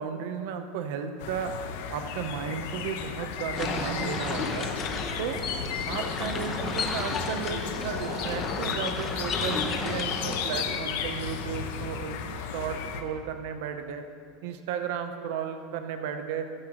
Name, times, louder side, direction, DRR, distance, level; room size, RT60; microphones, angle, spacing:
voice 1, 0.0-1.5 1.9-4.7 5.2-5.4 5.9-12.2 12.5-14.0 14.4-16.5, right 7 dB, 60° right, 7 dB, 0.8 m, -34 dB
sound 1, 1.2-13.0, left 7 dB, 65° left, 0.9 m, -34 dB
sound 2, 3.5-10.8, left 4 dB, 20° left, 0.8 m, -33 dB
sound 3, 3.5-10.9, equal, 15° right, 2.9 m, -41 dB
15.0 x 13.0 x 3.0 m, 2.4 s
supercardioid pair, 175°, 0 cm